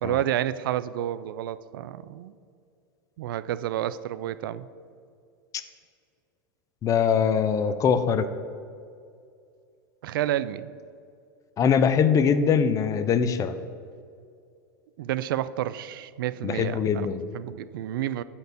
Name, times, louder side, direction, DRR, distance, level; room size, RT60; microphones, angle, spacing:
voice 1, 0.0-2.3 3.2-4.7 10.0-10.7 15.0-17.1 17.3-18.2, right 12 dB, 80° right, 15 dB, 0.4 m, -30 dB
voice 2, 6.8-8.3 11.6-13.6 16.4-17.3, left 7 dB, 30° left, 11 dB, 0.6 m, -22 dB
8.0 x 4.4 x 6.7 m, 2.3 s
hypercardioid pair, 115°, 11 cm